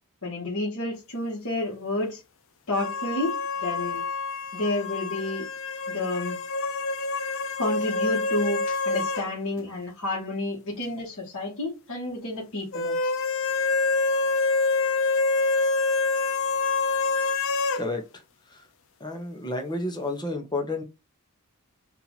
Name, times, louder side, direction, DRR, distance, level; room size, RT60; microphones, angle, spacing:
voice 1, 0.2-2.2 2.7-4.0 4.5-5.4 5.9-6.4 7.6-13.1, left 2 dB, 90° left, 1.9 m, -30 dB
sound 1, 2.7-9.3 9.6-9.7 12.7-17.8, left 3 dB, 65° left, 0.6 m, -26 dB
voice 2, 19.0-20.8, left 2 dB, 20° left, 1.0 m, -30 dB
4.3 x 2.8 x 4.0 m
head